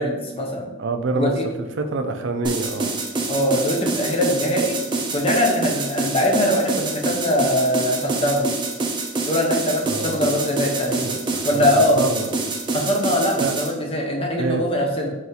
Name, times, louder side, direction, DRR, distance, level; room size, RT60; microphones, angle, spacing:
voice 1, 0.0-0.7 1.1-1.4 3.3-4.8 5.1-8.5 9.2-11.2 11.4-12.0 12.7-15.1, left 1 dB, 30° left, 1 dB, 0.7 m, -22 dB
voice 2, 0.8-3.0 9.8-10.2 10.9-12.3 13.4-13.6 14.4-14.9, right 3 dB, 75° right, 6 dB, 0.5 m, -27 dB
sound 1, 2.4-13.7, right 3 dB, 25° right, 0.5 m, -26 dB
4.2 x 2.6 x 3.9 m, 1.1 s
head